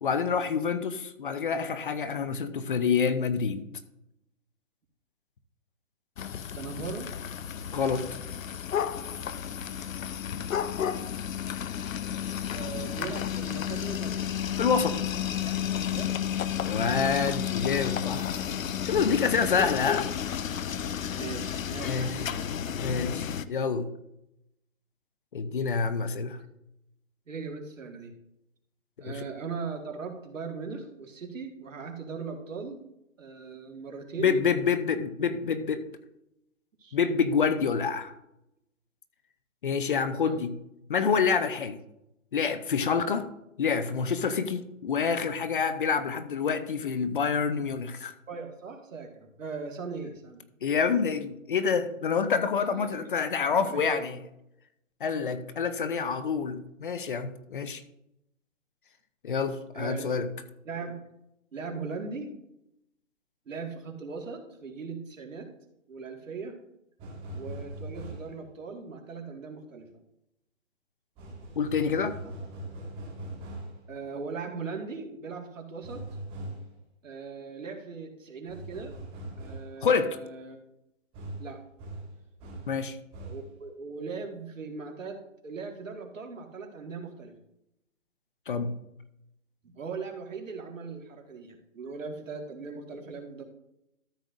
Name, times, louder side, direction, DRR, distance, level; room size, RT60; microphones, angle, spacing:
voice 1, 0.0-3.6 7.7-8.1 14.6-15.1 16.6-18.3 18.9-20.1 21.8-22.2 22.7-23.9 25.3-26.4 29.0-29.2 34.2-35.8 36.9-38.1 39.6-40.5 40.9-41.8 42.3-43.3 43.6-48.1 50.6-54.2 55.0-57.8 59.2-60.3 71.6-72.2 79.8-80.2 82.7-83.0 88.5-88.7, left 6 dB, 40° left, 11 dB, 0.7 m, -27 dB
sound 1, 6.2-23.5, left 9 dB, 80° left, 0.7 m, -32 dB
voice 2, 6.5-7.1 12.5-14.2 15.5-16.2 19.1-19.4 21.1-22.5 27.3-28.1 29.0-32.8 33.2-34.4 36.8-37.0 40.2-40.4 48.3-50.4 52.7-53.1 53.5-54.0 59.7-60.1 60.7-61.0 61.5-62.4 63.5-65.5 65.9-66.6 67.3-69.9 73.9-76.0 77.0-78.9 79.4-80.6 81.4-81.6 83.2-85.2 85.4-87.4 89.6-93.4, right 4 dB, 70° right, 2 dB, 2.0 m, -39 dB
sound 2, 67.0-68.4 71.2-73.8 75.8-76.7 78.5-79.8 81.1-82.8 83.1-83.5, right 1 dB, 15° right, 1.5 m, -41 dB
13.0 x 7.8 x 2.6 m, 0.84 s
hypercardioid pair, 155°, 39 cm